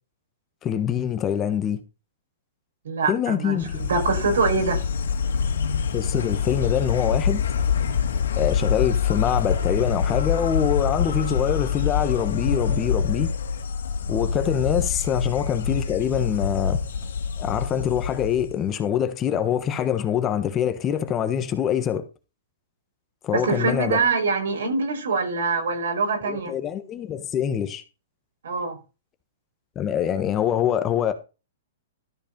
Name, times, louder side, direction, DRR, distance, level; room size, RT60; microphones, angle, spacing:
voice 1, 0.6-1.8 3.1-3.8 5.9-7.4 8.4-13.3 14.1-16.8 17.4-22.1 23.2-24.0 26.2-27.8 29.7-31.1, left 9 dB, 20° left, 1.2 m, -24 dB
voice 2, 2.9-4.8 23.3-26.5 28.4-28.8, right 4 dB, 80° right, 5.3 m, -24 dB
Insect, 3.6-18.7, left 6 dB, 85° left, 2.0 m, -25 dB
13.0 x 4.8 x 5.3 m
hypercardioid pair, 145°, 0 cm